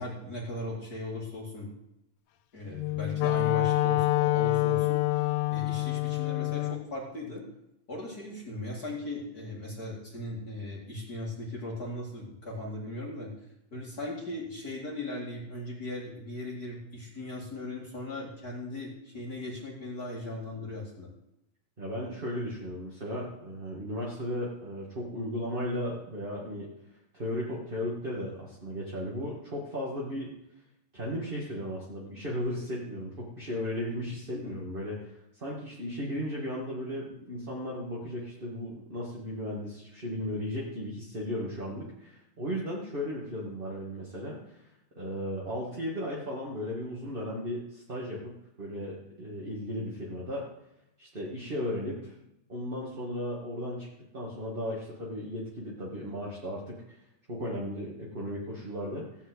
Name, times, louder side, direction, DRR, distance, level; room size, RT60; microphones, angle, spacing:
voice 1, 0.0-1.7 2.5-7.4 7.9-13.3 13.7-21.1 34.3-34.6, left 1 dB, 30° left, -5 dB, 2.7 m, -38 dB
Wind instrument woodwind instrument, 2.7-6.9, left 19 dB, 80° left, 1.6 m, -27 dB
voice 2, 21.8-26.7 27.1-30.3 30.9-44.6 45.0-48.3 48.6-50.5 51.0-52.1 52.5-53.9 54.1-57.0 57.3-59.1, equal, 20° right, -4 dB, 1.9 m, -35 dB
16.0 x 5.7 x 8.2 m, 0.87 s
omnidirectional pair, 3.3 m